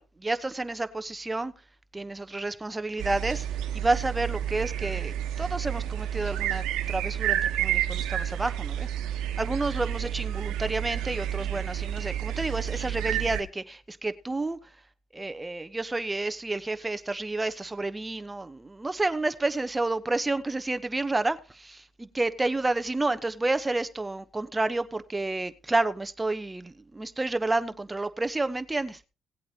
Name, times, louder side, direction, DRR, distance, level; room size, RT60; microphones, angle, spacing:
voice 1, 0.0-1.5 1.9-3.5 3.7-8.9 9.4-14.6 15.1-29.0, right 2 dB, 15° right, 1.0 m, -30 dB
sound 1, 3.0-13.4, right 11 dB, 85° right, 1.1 m, -30 dB
18.0 x 8.5 x 2.9 m
cardioid pair, 80°, 0 cm